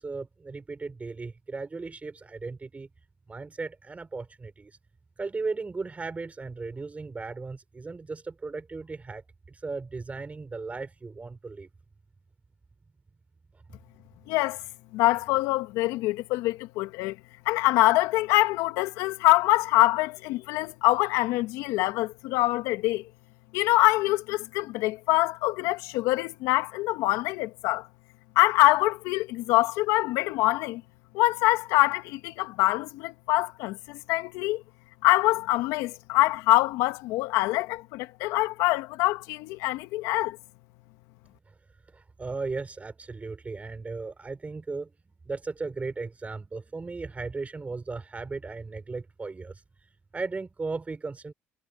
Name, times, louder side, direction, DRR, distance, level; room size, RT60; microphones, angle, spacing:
voice 1, 0.0-2.9 3.3-4.8 5.2-9.2 9.5-11.7 41.9-44.9 45.3-49.6 50.1-51.3, right 3 dB, 25° right, 4.0 m, -36 dB
voice 2, 14.3-14.6 14.9-17.2 17.5-23.1 23.5-27.9 28.4-30.8 31.1-34.6 35.0-40.4, left 18 dB, 80° left, 1.9 m, -24 dB
supercardioid pair, 70°, 5 cm